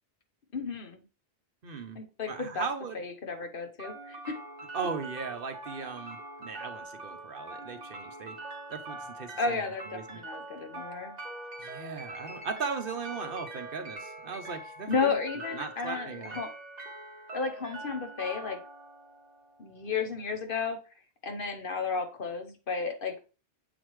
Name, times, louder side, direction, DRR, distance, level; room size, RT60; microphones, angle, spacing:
voice 1, 0.5-1.0 1.9-2.6 2.9-4.4 9.4-11.1 14.9-16.5 17.3-18.6 19.6-20.8 21.2-23.3, left 4 dB, 60° left, 5 dB, 1.2 m, -33 dB
voice 2, 1.6-2.0 2.3-3.0 4.7-8.4 8.7-10.2 11.6-15.2 15.5-16.4, right 5 dB, 60° right, 5 dB, 1.1 m, -38 dB
sound 1, 3.8-19.8, right 2 dB, 45° right, 1.3 m, -43 dB
7.9 x 4.1 x 3.1 m, 0.33 s
omnidirectional pair, 1.0 m